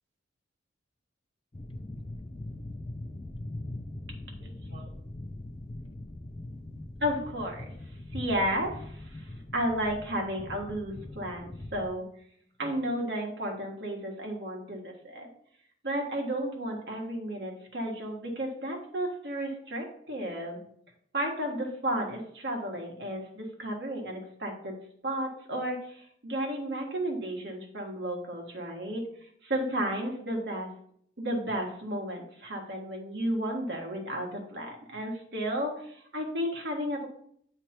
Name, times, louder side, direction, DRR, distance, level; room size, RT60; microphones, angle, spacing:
sound 1, 1.5-11.9, left 1 dB, 25° left, 0.4 m, -41 dB
voice 1, 4.4-4.8 7.0-7.7 8.1-12.0 12.6-15.3 15.8-20.6 21.1-24.8 25.0-29.1 29.4-30.7 31.2-37.1, equal, 60° right, 1 dB, 1.6 m, -33 dB
8.9 x 3.3 x 4.3 m, 0.67 s
head